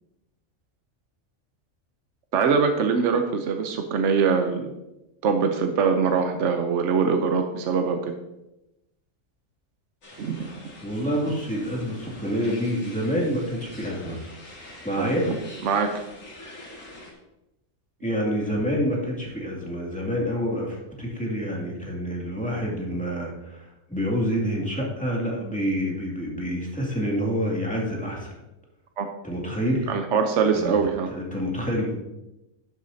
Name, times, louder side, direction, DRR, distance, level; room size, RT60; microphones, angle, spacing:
voice 1, 2.3-4.7 5.2-8.1 10.2-10.5 15.0-15.4 15.6-16.0 29.0-29.1 29.9-31.1, right 5 dB, 70° right, 5 dB, 1.1 m, -23 dB
sound 1, 10.0-17.1, left 1 dB, 85° left, 2.4 m, -45 dB
voice 2, 10.8-14.2 14.8-15.3 18.0-28.4 29.2-29.9 30.5-30.7 31.1-32.0, equal, 5° left, -3 dB, 2.3 m, -27 dB
12.0 x 8.3 x 2.7 m, 0.93 s
omnidirectional pair, 1.3 m